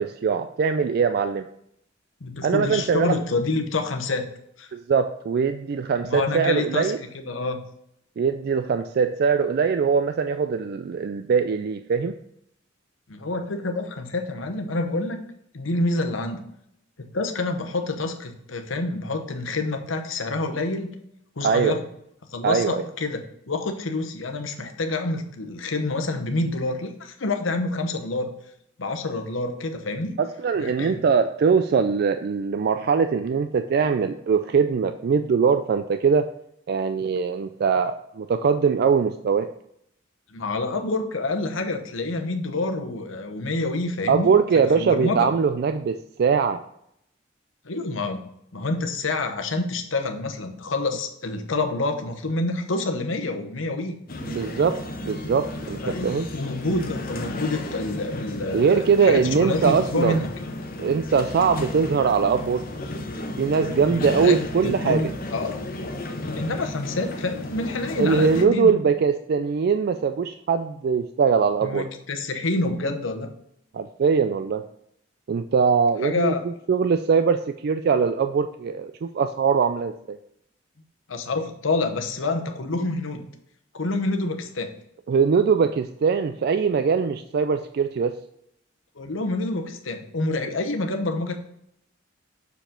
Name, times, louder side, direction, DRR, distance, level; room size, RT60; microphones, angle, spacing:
voice 1, 0.0-1.5 2.4-3.2 4.7-7.0 8.2-12.1 21.4-21.8 22.4-22.8 30.2-36.3 36.7-39.5 44.1-46.6 54.3-56.3 58.5-60.2 60.8-62.7 63.4-65.1 68.0-71.9 73.7-74.6 75.3-80.2 85.1-88.2, right 6 dB, 55° right, 9 dB, 0.3 m, -22 dB
voice 2, 2.2-4.3 4.6-4.7 6.0-7.6 13.1-15.2 15.5-16.4 17.0-20.9 21.4-21.9 22.3-28.3 28.8-30.2 30.6-31.0 40.3-44.3 44.8-45.3 47.6-54.0 55.8-60.3 63.9-65.6 66.4-68.7 71.6-73.3 76.0-76.4 81.1-83.3 83.7-84.7 89.0-91.4, left 2 dB, 85° left, 5 dB, 1.0 m, -27 dB
sound 1, 54.1-68.4, left 2 dB, 50° left, 0.9 m, -33 dB
6.9 x 4.8 x 3.8 m, 0.75 s
head